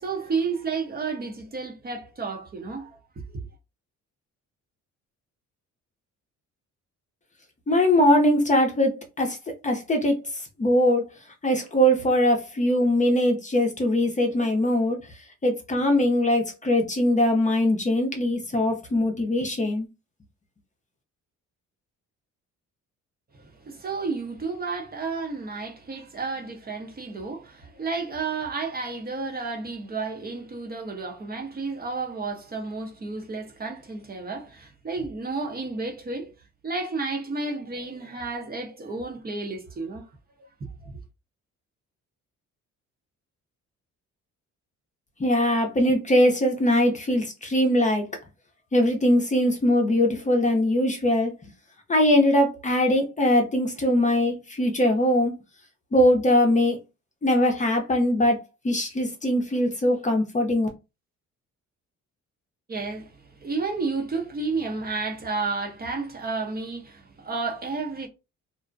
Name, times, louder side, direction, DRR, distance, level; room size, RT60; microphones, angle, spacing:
voice 1, 0.0-3.5 23.4-36.3 36.6-40.1 40.4-40.9 62.7-68.1, right 4 dB, 30° right, 0.7 m, -32 dB
voice 2, 7.7-8.9 9.2-9.4 9.6-10.2 10.6-11.1 11.4-15.0 15.4-19.9 45.2-48.0 48.7-51.3 51.9-55.3 55.9-56.8 57.2-60.7, left 1 dB, 25° left, 0.6 m, -21 dB
2.5 x 2.1 x 2.5 m
cardioid pair, 90°, 30 cm